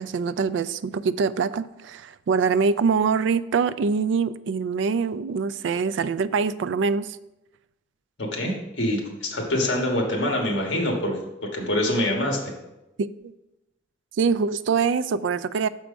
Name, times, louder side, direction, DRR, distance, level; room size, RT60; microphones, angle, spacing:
voice 1, 0.0-7.2 13.0-13.3 14.2-15.7, right 5 dB, 65° right, 14 dB, 0.3 m, -24 dB
voice 2, 8.2-12.5, left 1 dB, 60° left, 1 dB, 1.5 m, -25 dB
6.4 x 4.6 x 5.1 m, 0.93 s
head